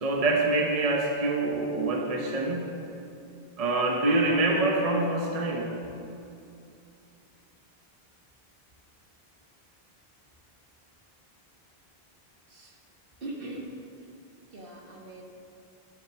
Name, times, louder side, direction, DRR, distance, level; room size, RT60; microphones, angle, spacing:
voice 1, 0.0-2.7 3.6-5.7, right 2 dB, 40° right, 1 dB, 1.0 m, -25 dB
voice 2, 13.2-13.7 14.5-15.2, right 2 dB, 60° right, 0 dB, 1.5 m, -40 dB
10.5 x 7.5 x 6.1 m, 2.6 s
omnidirectional pair, 1.0 m